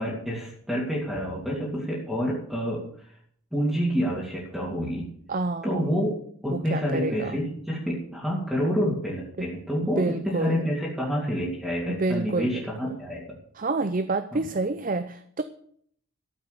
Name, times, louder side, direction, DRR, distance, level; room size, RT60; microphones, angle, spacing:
voice 1, 0.0-3.1 3.5-5.1 5.6-6.1 6.4-13.2 14.3-14.5, equal, ahead, -6 dB, 3.0 m, -28 dB
voice 2, 5.3-5.8 6.5-7.4 9.4-9.5 9.8-10.7 11.9-13.0 13.6-15.4, right 3 dB, 40° right, 11 dB, 0.6 m, -28 dB
13.0 x 7.9 x 6.9 m, 0.62 s
head